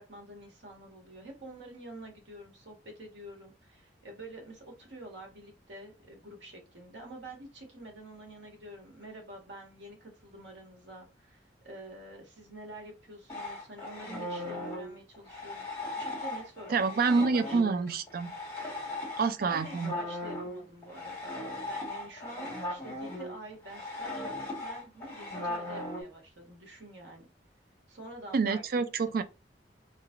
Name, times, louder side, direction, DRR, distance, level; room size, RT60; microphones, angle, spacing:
voice 1, 0.0-17.7 19.4-27.3 27.9-28.6 29.0-29.1, right 1 dB, 75° right, 1.4 m, -47 dB
sound 1, 13.3-26.0, left 1 dB, 15° left, 1.6 m, -38 dB
voice 2, 16.7-18.3 19.2-19.9 28.3-29.2, right 4 dB, 55° right, 0.4 m, -27 dB
3.2 x 3.1 x 2.5 m
head